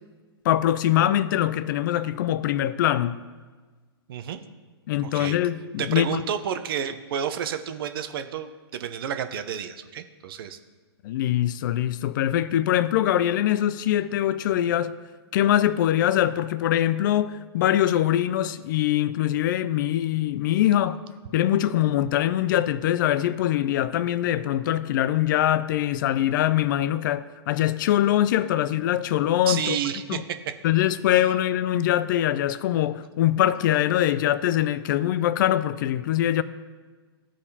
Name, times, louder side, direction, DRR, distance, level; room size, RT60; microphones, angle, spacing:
voice 1, 0.4-3.2 4.9-6.2 11.0-15.0 15.3-21.0 21.3-29.8 30.1-30.2 30.6-36.4, left 12 dB, 50° left, 0.3 m, -23 dB
voice 2, 4.1-4.4 5.0-5.4 5.8-10.6 29.5-30.4, right 8 dB, 60° right, 0.7 m, -30 dB
14.5 x 5.0 x 2.8 m
hypercardioid pair, 125°, 14 cm